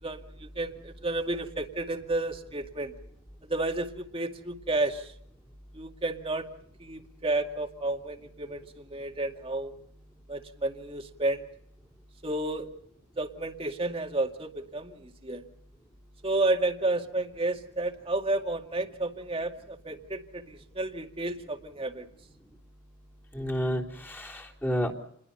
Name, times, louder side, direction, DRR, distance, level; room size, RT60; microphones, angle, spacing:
voice 1, 0.0-2.9 3.4-5.1 5.7-6.5 6.8-9.7 10.3-11.4 12.2-12.7 13.2-15.4 16.2-22.1, right 2 dB, 25° right, 4 dB, 2.2 m, -31 dB
voice 2, 23.3-24.9, equal, 10° left, -1 dB, 3.4 m, -30 dB
29.5 x 22.0 x 5.7 m, 0.70 s
head